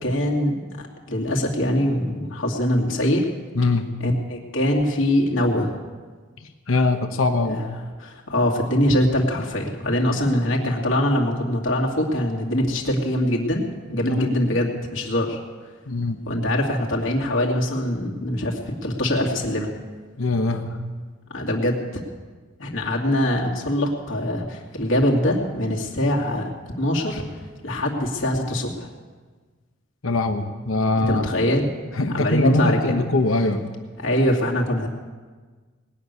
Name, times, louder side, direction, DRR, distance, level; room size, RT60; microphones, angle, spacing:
voice 1, 0.0-3.2 4.0-5.8 7.4-7.7 8.0-15.4 16.3-19.7 21.3-22.0 22.6-26.5 26.8-27.2 27.6-28.9 31.0-31.7 32.1-33.0 34.0-34.9, left 1 dB, 70° left, -2 dB, 2.4 m, -23 dB
voice 2, 3.5-3.9 6.7-7.6 14.0-14.3 15.9-16.2 20.2-20.8 30.0-31.2 32.0-33.6, left 2 dB, 85° left, 6 dB, 1.0 m, -22 dB
19.5 x 6.8 x 9.5 m, 1.4 s
head